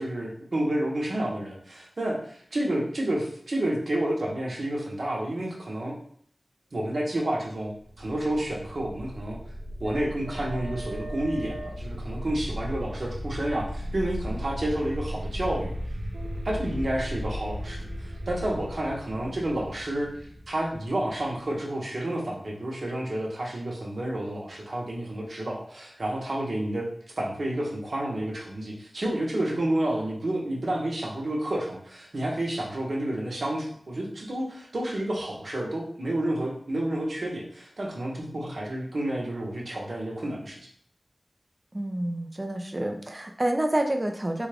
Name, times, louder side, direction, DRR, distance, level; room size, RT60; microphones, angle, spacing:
voice 1, 0.0-5.9 6.7-9.4 9.8-15.8 16.4-20.1 20.5-26.9 27.2-40.6, right 1 dB, 65° right, -2 dB, 1.0 m, -30 dB
sound 1, 7.8-21.5, equal, 85° right, 0.7 m, -36 dB
voice 2, 41.7-44.5, right 1 dB, 25° right, 3 dB, 0.4 m, -28 dB
3.5 x 2.4 x 3.4 m, 0.63 s
wide cardioid pair, 55°, 0 cm